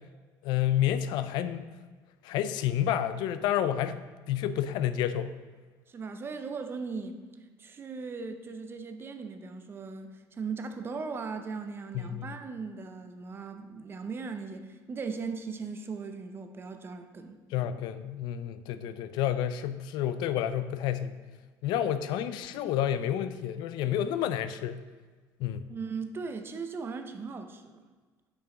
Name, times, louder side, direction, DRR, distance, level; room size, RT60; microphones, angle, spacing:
voice 1, 0.4-1.6 2.2-4.0 4.3-5.3 11.9-12.3 17.5-21.2 21.6-24.8 25.4-25.7, left 10 dB, 70° left, 12 dB, 0.4 m, -29 dB
voice 2, 5.9-7.2 7.6-17.4 25.7-27.8, right 4 dB, 30° right, 7 dB, 0.6 m, -38 dB
6.1 x 5.7 x 3.8 m, 1.4 s
cardioid pair, 115°, 8 cm